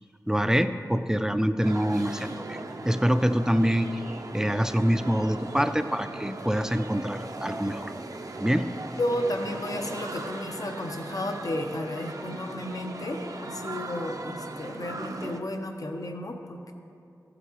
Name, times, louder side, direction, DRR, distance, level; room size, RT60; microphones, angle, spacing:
voice 1, 0.3-2.6 2.8-3.9 4.3-7.9 8.4-8.7, equal, 10° right, 10 dB, 0.4 m, -25 dB
sound 1, 1.6-15.4, right 2 dB, 60° right, 0.6 m, -38 dB
voice 2, 9.0-16.7, left 1 dB, 60° left, 4 dB, 0.8 m, -32 dB
15.0 x 8.0 x 3.0 m, 2.5 s
wide cardioid pair, 60°, 7 cm